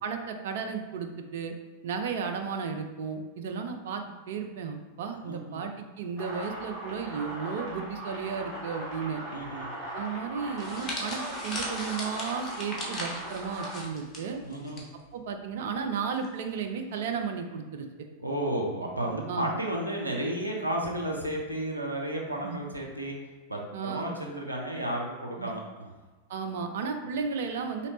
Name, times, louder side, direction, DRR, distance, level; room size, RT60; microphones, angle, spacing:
voice 1, 0.0-1.5 1.8-9.2 9.9-14.4 15.1-17.9 19.3-19.5 22.4-22.6 23.7-24.1 25.4-25.5 26.3-27.9, right 6 dB, 55° right, 5 dB, 0.4 m, -34 dB
voice 2, 5.2-5.6 9.3-9.7 14.4-14.8 18.2-23.2 23.5-25.9, right 1 dB, 85° right, -1 dB, 0.7 m, -32 dB
sound 1, 6.2-13.8, right 1 dB, 30° right, 1.3 m, -39 dB
sound 2, 10.6-14.8 15.1-15.3 16.2-16.5, left 1 dB, 20° left, 1.0 m, -38 dB
4.1 x 2.9 x 2.9 m, 1.2 s
figure-of-eight pair, 90°, 0 cm